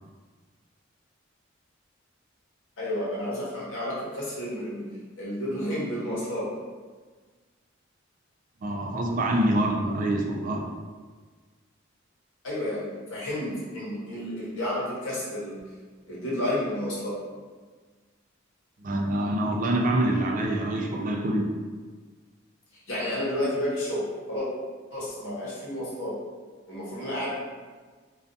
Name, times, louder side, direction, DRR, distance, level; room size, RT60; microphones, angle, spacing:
voice 1, 2.8-4.9 5.2-6.5 12.4-15.7 16.1-17.2 22.7-24.5 24.9-26.2 26.7-27.3, left 1 dB, 85° left, -7 dB, 0.9 m, -31 dB
voice 2, 8.6-10.7 18.8-21.5, right 1 dB, 40° right, 1 dB, 0.3 m, -25 dB
2.4 x 2.3 x 2.5 m, 1.4 s
head